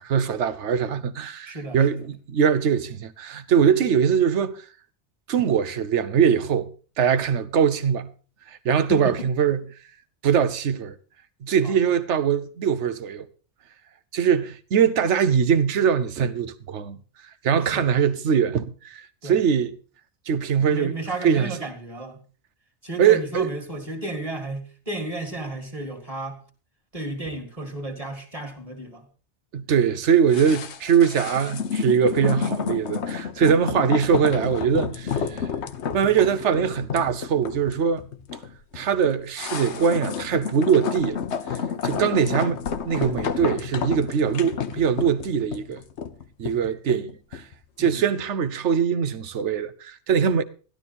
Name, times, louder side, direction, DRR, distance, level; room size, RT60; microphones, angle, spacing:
voice 1, 0.0-4.6 5.3-6.7 7.0-8.1 8.6-9.6 10.2-10.9 11.4-13.3 14.1-17.0 17.4-19.7 20.3-21.0 21.2-21.5 23.0-23.5 29.5-35.4 35.9-38.0 38.7-41.2 41.8-42.6 42.9-45.8 46.4-47.4 47.8-50.4, right 7 dB, 80° right, 1.1 m, -22 dB
voice 2, 1.5-2.0 8.9-9.3 11.6-11.7 17.7-17.9 19.2-19.4 20.6-22.2 22.8-26.4 26.9-29.1 47.8-48.0, right 2 dB, 30° right, 2.1 m, -33 dB
sound 1, 30.3-47.5 47.8-47.9, left 7 dB, 75° left, 1.2 m, -30 dB
12.5 x 12.0 x 4.2 m
omnidirectional pair, 1.2 m